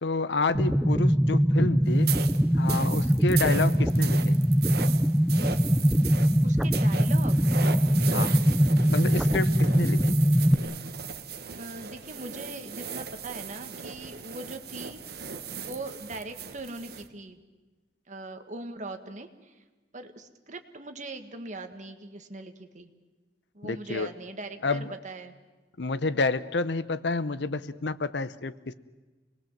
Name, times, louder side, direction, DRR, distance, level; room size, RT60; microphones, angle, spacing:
voice 1, 0.0-2.1 2.5-4.4 8.1-8.4 8.9-10.2 23.6-24.1 24.6-24.9 25.8-28.7, left 3 dB, 80° left, 15 dB, 0.8 m, -29 dB
sound 1, 0.5-10.5, equal, 5° right, 0.7 m, -22 dB
sound 2, 2.0-17.1, right 6 dB, 60° right, 1.3 m, -37 dB
voice 2, 6.4-7.5 11.5-15.3 15.6-17.4 18.1-19.3 19.9-22.9 23.5-25.4, right 2 dB, 45° right, 7 dB, 1.8 m, -40 dB
27.0 x 20.5 x 7.4 m, 1.2 s
head